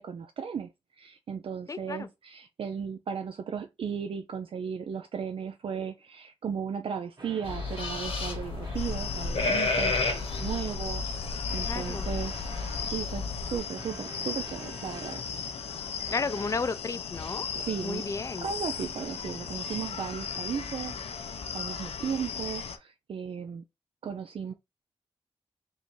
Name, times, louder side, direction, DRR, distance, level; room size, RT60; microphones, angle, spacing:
voice 1, 0.0-15.2 17.5-18.0 18.4-23.6 24.0-24.5, right 7 dB, 65° right, 0.4 m, -36 dB
voice 2, 1.7-2.1 11.6-12.1 16.1-17.5 17.8-18.5, left 4 dB, 35° left, 0.4 m, -33 dB
sound 1, 7.2-10.7 11.5-13.0 13.7-15.5 16.0-16.6, right 2 dB, 40° right, 1.3 m, -46 dB
sound 2, 7.4-13.6, left 3 dB, 70° left, 1.3 m, -32 dB
sound 3, 8.8-22.8, left 6 dB, 85° left, 0.6 m, -37 dB
3.6 x 2.6 x 4.5 m
wide cardioid pair, 100°, 10 cm